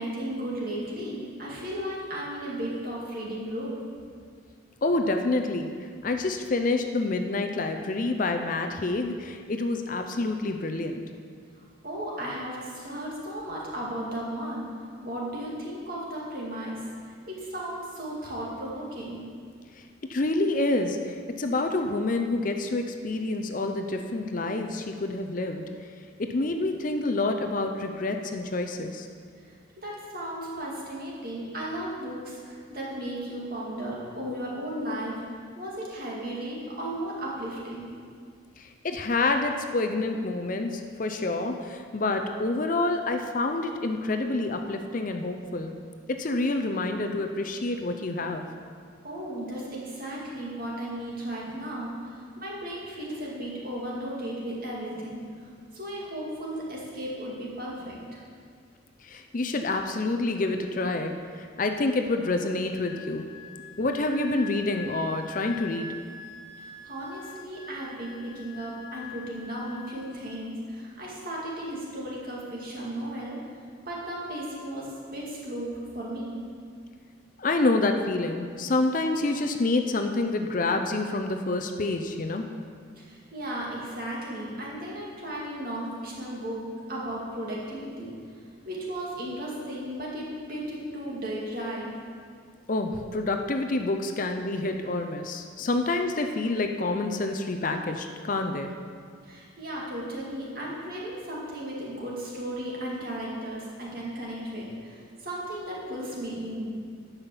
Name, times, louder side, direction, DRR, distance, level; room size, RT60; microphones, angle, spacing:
voice 1, 0.0-3.8 11.8-14.7 15.0-19.2 29.8-35.1 35.6-37.9 49.0-55.2 55.7-58.2 66.6-73.4 73.9-76.4 83.0-88.1 88.7-91.9 99.2-106.7, right 1 dB, 45° right, -4 dB, 2.4 m, -35 dB
voice 2, 4.8-5.7 6.0-11.0 20.1-25.7 26.2-29.1 38.6-45.7 46.2-48.5 59.0-63.3 63.8-65.9 77.4-82.5 92.7-98.7, left 2 dB, 40° left, 5 dB, 0.5 m, -28 dB
Wind instrument woodwind instrument, 62.7-70.2, left 4 dB, 20° left, 1.0 m, -44 dB
10.5 x 5.7 x 7.1 m, 2.1 s
head